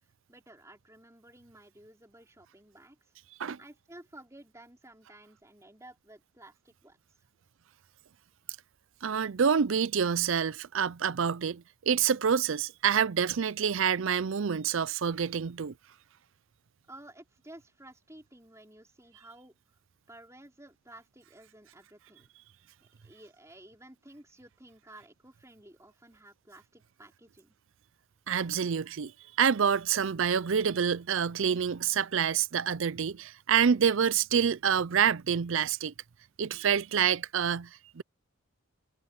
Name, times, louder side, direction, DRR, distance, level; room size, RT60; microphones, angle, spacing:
voice 1, 0.3-3.0 3.6-7.0 16.9-19.6 20.1-22.3 22.8-27.5, right 1 dB, 15° right, 4.0 m, -53 dB
voice 2, 9.0-15.7 28.3-29.1 29.4-35.9 36.4-38.0, right 7 dB, 60° right, 0.5 m, -27 dB
head